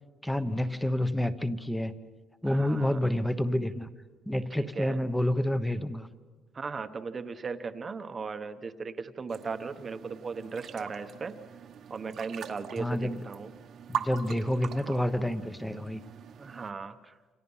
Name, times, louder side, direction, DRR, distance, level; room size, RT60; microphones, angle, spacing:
voice 1, 0.2-1.9 2.4-3.9 4.3-6.1 12.8-13.2 13.9-16.0, left 1 dB, 5° left, 11 dB, 1.0 m, -29 dB
voice 2, 2.4-3.0 4.6-5.0 6.5-11.4 11.9-13.5 16.4-17.2, right 5 dB, 25° right, 9 dB, 1.0 m, -37 dB
sound 1, 9.3-16.7, right 8 dB, 50° right, 1.2 m, -42 dB
29.0 x 27.0 x 5.6 m, 1.3 s
cardioid pair, 150°, 0 cm